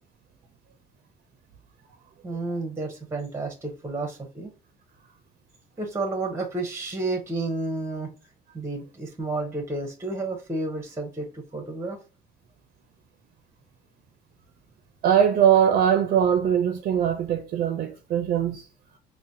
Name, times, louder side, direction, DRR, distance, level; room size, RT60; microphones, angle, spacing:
voice 1, 2.2-4.5 5.8-8.1 8.5-12.0, right 2 dB, 15° right, 0.7 m, -31 dB
voice 2, 15.0-18.7, right 9 dB, 55° right, 0.4 m, -21 dB
3.8 x 2.1 x 2.6 m
cardioid pair, 110°, 17 cm